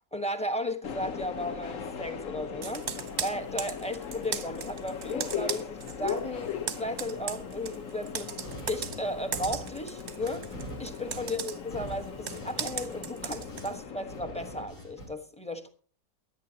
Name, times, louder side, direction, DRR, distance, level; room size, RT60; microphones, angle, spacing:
voice 1, 0.1-8.3 8.7-15.7, left 1 dB, 5° left, 0.8 m, -35 dB
Subway metro underground, 0.8-14.7, left 7 dB, 55° left, 1.1 m, -39 dB
Computer keyboard, 2.6-6.2 6.5-13.7, right 7 dB, 50° right, 0.9 m, -38 dB
sound 1, 8.1-13.8 14.1-15.1, right 2 dB, 80° left, 6.6 m, -45 dB
23.0 x 9.3 x 2.8 m
omnidirectional pair, 2.0 m